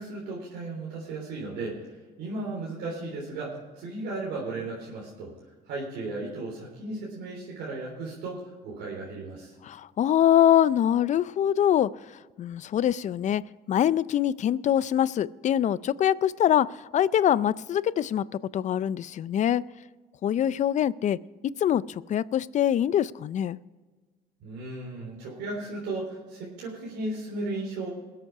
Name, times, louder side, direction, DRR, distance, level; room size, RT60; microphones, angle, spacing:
voice 1, 0.0-5.3 5.7-9.5 24.4-27.9, right 2 dB, 85° right, -4 dB, 3.6 m, -35 dB
voice 2, 9.7-11.9 12.4-13.4 13.7-18.2 18.5-19.6 20.2-21.2 21.6-21.8 22.1-23.6, left 10 dB, 45° left, 18 dB, 0.4 m, -24 dB
20.5 x 7.9 x 4.8 m, 1.3 s
cardioid pair, 110°, 17 cm